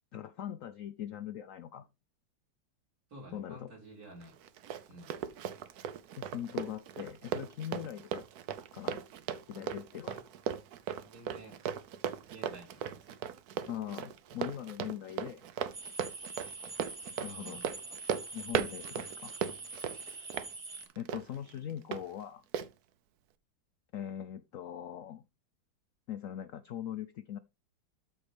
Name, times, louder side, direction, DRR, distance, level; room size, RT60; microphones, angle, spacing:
voice 1, 0.1-1.9 3.3-3.7 6.2-8.3 8.7-9.0 9.5-10.2 13.7-15.4 17.2-17.6 18.3-19.4 21.0-22.4 23.9-25.3 26.1-27.4, left 10 dB, 80° left, 0.7 m, -41 dB
voice 2, 3.1-4.4 4.9-5.2 10.1-10.2 11.0-11.6 12.3-13.2 17.3-17.7, right 1 dB, 50° right, 4.2 m, -51 dB
Run, 4.2-22.0 22.5-22.7, right 9 dB, 65° right, 1.1 m, -38 dB
sound 1, 15.7-20.9, right 3 dB, 25° right, 0.9 m, -45 dB
13.0 x 4.6 x 3.4 m
omnidirectional pair, 2.1 m